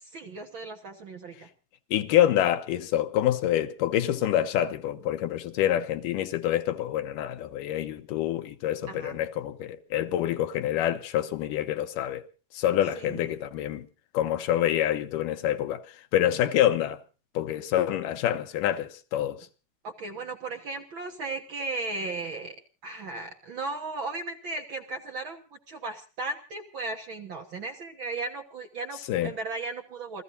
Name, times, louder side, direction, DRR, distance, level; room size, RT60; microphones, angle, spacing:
voice 1, 0.1-1.5 8.9-9.2 12.9-13.3 19.8-22.6 22.8-30.2, right 3 dB, 50° right, 1.6 m, -36 dB
voice 2, 1.9-12.2 12.5-13.9 14.1-15.8 16.1-17.0 17.4-19.5 29.1-29.3, left 11 dB, 85° left, 2.6 m, -26 dB
28.5 x 14.5 x 2.7 m
omnidirectional pair, 3.8 m